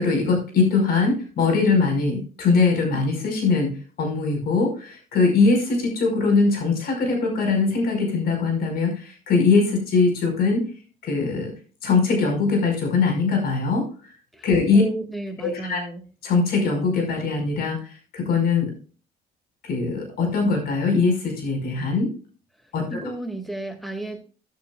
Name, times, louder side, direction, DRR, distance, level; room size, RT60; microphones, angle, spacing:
voice 1, 0.0-10.6 11.0-11.5 11.8-13.9 14.4-14.8 15.4-15.8 16.2-17.8 18.1-18.7 19.6-22.1 22.7-23.1, left 4 dB, 65° left, 2 dB, 5.3 m, -21 dB
voice 2, 14.7-16.0 22.9-24.2, right 1 dB, ahead, 5 dB, 2.3 m, -33 dB
14.0 x 10.5 x 2.4 m, 0.38 s
cardioid pair, 110°, 17 cm